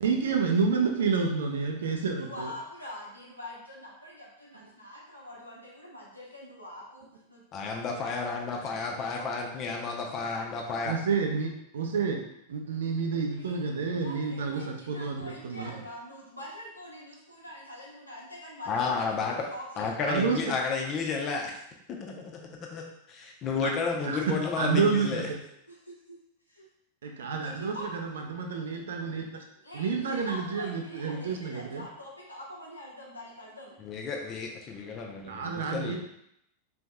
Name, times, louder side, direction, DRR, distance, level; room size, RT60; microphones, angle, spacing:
voice 1, 0.0-2.5 10.8-12.2 12.5-15.7 20.0-20.4 23.6-23.7 24.0-25.4 27.0-29.4 29.7-31.8 35.3-36.0, right 5 dB, 65° right, 3 dB, 0.6 m, -29 dB
voice 2, 2.1-9.3 10.3-10.5 13.3-13.6 13.9-20.1 25.7-26.2 26.5-26.7 27.4-27.9 29.6-33.7, left 1 dB, 90° left, -5 dB, 1.1 m, -45 dB
voice 3, 7.5-11.0 18.7-19.4 19.8-21.6 21.9-22.4 22.7-25.3 33.8-36.0, left 4 dB, 30° left, 1 dB, 0.7 m, -32 dB
4.1 x 3.4 x 2.3 m, 0.76 s
figure-of-eight pair, 90°, 0 cm